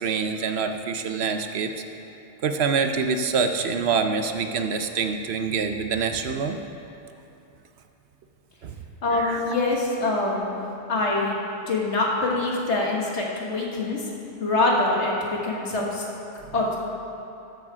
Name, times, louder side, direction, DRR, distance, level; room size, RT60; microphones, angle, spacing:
voice 1, 0.0-1.7 2.4-6.6 8.6-8.7 9.1-9.4, right 5 dB, 70° right, 7 dB, 0.9 m, -25 dB
voice 2, 9.0-10.6 10.9-14.1 14.4-16.1 16.5-16.8, left 2 dB, 75° left, -2 dB, 1.8 m, -24 dB
13.0 x 7.3 x 4.8 m, 2.8 s
omnidirectional pair, 1.2 m